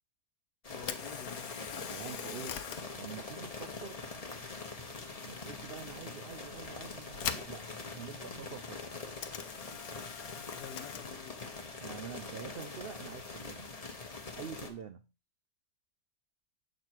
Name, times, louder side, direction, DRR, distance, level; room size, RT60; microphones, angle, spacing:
sound 1, 0.6-14.7, left 3 dB, 25° left, 0.9 m, -44 dB
voice 1, 0.7-1.5 10.5-11.6, left 11 dB, 90° left, 1.2 m, -49 dB
Camera, 0.7-14.8, left 9 dB, 70° left, 1.1 m, -46 dB
voice 2, 1.9-2.6 2.9-4.0 5.2-8.8 11.8-13.8 14.4-15.1, right 7 dB, 80° right, 0.5 m, -46 dB
7.5 x 4.9 x 4.6 m
omnidirectional pair, 1.7 m